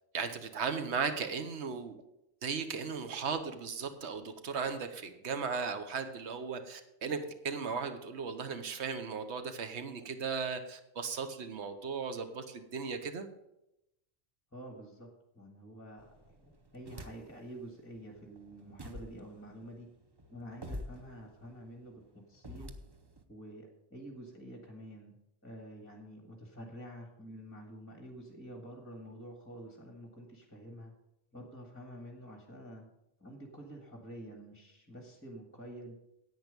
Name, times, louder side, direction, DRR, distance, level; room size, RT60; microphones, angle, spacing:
voice 1, 0.1-2.0 2.4-13.3, right 5 dB, 85° right, 8 dB, 1.3 m, -36 dB
voice 2, 14.5-15.1 15.3-19.9 20.3-22.0 22.3-22.7 23.3-25.2 25.4-30.9 31.3-32.9 33.2-36.0, equal, 10° left, 2 dB, 1.7 m, -48 dB
sound 1, 16.0-17.5 17.9-23.2, equal, 25° right, 0.8 m, -48 dB
10.5 x 8.7 x 5.2 m, 0.85 s
omnidirectional pair, 1.1 m